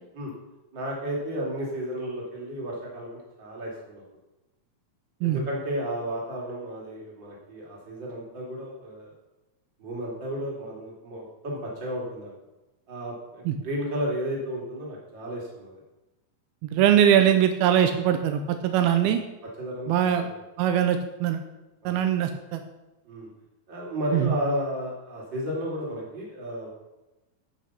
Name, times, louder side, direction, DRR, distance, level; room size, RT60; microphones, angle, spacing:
voice 1, 0.7-4.0 5.2-9.1 9.8-12.3 12.9-15.8 19.0-19.1 19.6-20.3 21.8-22.1 23.1-23.3 23.7-26.7, equal, 30° right, -3 dB, 3.4 m, -33 dB
voice 2, 16.7-19.2 19.9-20.3 20.6-21.4 21.9-22.6 24.1-24.4, right 10 dB, 85° right, 7 dB, 2.6 m, -22 dB
14.5 x 6.1 x 5.9 m, 1.0 s
omnidirectional pair, 4.3 m